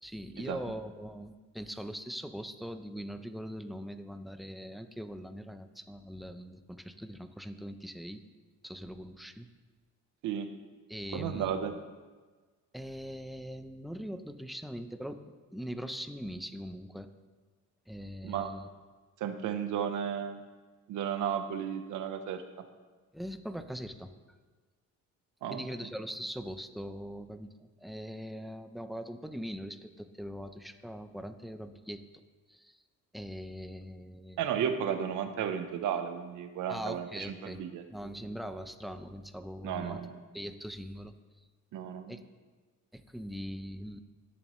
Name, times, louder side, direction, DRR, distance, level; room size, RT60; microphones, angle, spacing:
voice 1, 0.0-8.2 8.6-9.5 10.9-11.8 12.7-15.2 15.5-17.1 17.9-18.7 23.1-24.4 25.5-32.1 32.5-32.8 33.1-34.4 36.7-37.6 37.9-40.0 40.3-41.5 42.1-42.2 42.9-44.0, equal, ahead, 8 dB, 0.8 m, -41 dB
voice 2, 11.1-11.7 18.2-18.5 19.2-20.4 20.9-22.6 25.4-25.6 34.4-37.8 39.6-40.2 41.7-42.2, right 8 dB, 85° right, 8 dB, 1.0 m, -33 dB
18.5 x 7.1 x 3.2 m, 1.4 s
cardioid pair, 90°, 30 cm